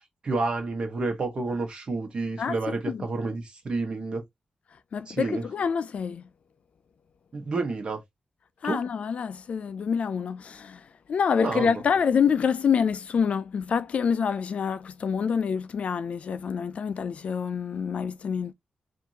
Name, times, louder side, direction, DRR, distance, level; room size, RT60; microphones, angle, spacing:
voice 1, 0.2-4.2 5.1-5.5 7.3-8.0 8.6-8.8 11.4-11.8, right 3 dB, 40° right, 1.3 m, -29 dB
voice 2, 2.4-3.0 4.9-6.2 8.6-10.8 11.1-18.5, left 6 dB, 55° left, 0.4 m, -27 dB
4.6 x 2.6 x 2.8 m
wide cardioid pair, 175°, 3 cm